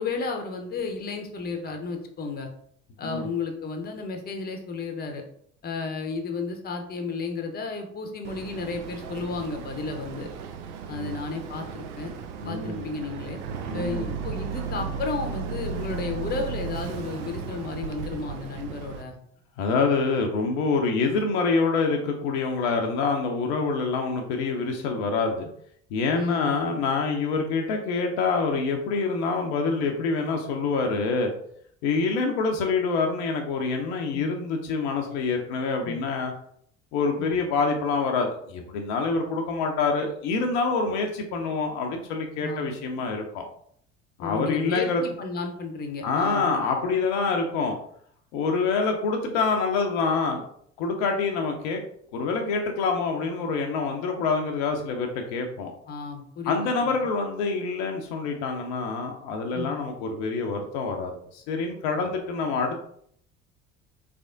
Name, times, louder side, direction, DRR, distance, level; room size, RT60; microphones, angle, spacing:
voice 1, 0.0-2.5 3.0-5.2 5.6-10.3 10.9-12.1 12.4-13.4 13.7-19.2 26.1-26.5 34.1-34.3 35.8-36.0 37.2-37.3 42.4-42.7 44.2-46.5 55.9-56.6 56.9-57.0 59.5-59.7, left 4 dB, 25° left, 4 dB, 0.7 m, -33 dB
Boat Water vehicle, 8.2-19.0, right 6 dB, 70° right, 0.5 m, -35 dB
voice 2, 10.9-11.2 12.4-12.9 13.7-14.1 19.6-25.5 25.9-31.3 31.8-36.3 36.9-43.4 44.2-45.0 46.0-47.8 48.3-50.4 50.8-51.8 52.1-55.7 56.5-62.8, left 4 dB, 60° left, 3 dB, 0.6 m, -26 dB
3.4 x 3.3 x 2.5 m, 0.65 s
figure-of-eight pair, 55°, 37 cm